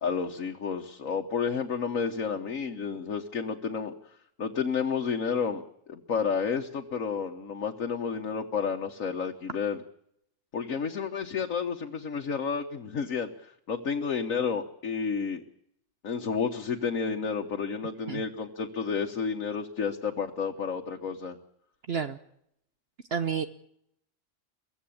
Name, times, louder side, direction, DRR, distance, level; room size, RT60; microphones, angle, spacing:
voice 1, 0.0-9.8 10.5-15.4 16.0-21.4, left 6 dB, 85° left, 2 dB, 1.7 m, -31 dB
voice 2, 21.9-22.2 23.1-23.5, right 7 dB, 55° right, 11 dB, 1.2 m, -29 dB
23.5 x 15.5 x 8.6 m, 0.73 s
omnidirectional pair, 1.4 m